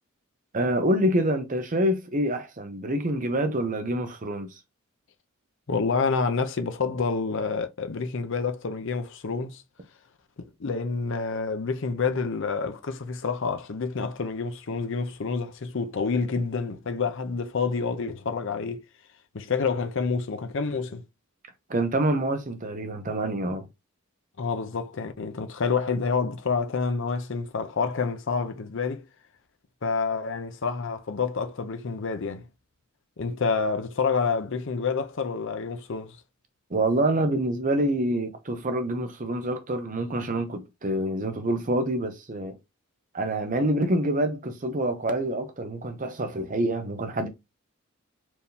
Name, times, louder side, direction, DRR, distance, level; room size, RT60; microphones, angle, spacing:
voice 1, 0.5-4.5 21.7-23.7 36.7-42.6 43.1-47.3, right 1 dB, 40° right, 0.7 m, -26 dB
voice 2, 5.7-9.6 10.6-18.8 19.3-21.0 24.4-29.0 29.8-32.5 33.2-36.2, left 4 dB, 60° left, 0.6 m, -28 dB
4.5 x 3.5 x 2.7 m
head